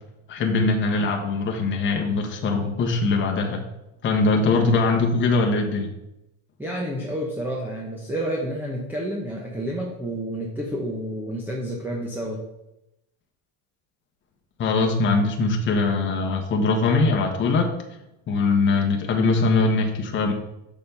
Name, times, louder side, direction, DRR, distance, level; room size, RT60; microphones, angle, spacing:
voice 1, 0.3-3.6 4.0-5.9 14.6-17.7 18.3-20.3, left 3 dB, 25° left, 1 dB, 1.2 m, -22 dB
voice 2, 6.6-12.4, right 1 dB, 5° right, -2 dB, 0.9 m, -30 dB
6.9 x 5.2 x 5.4 m, 0.89 s
supercardioid pair, 135°, 43 cm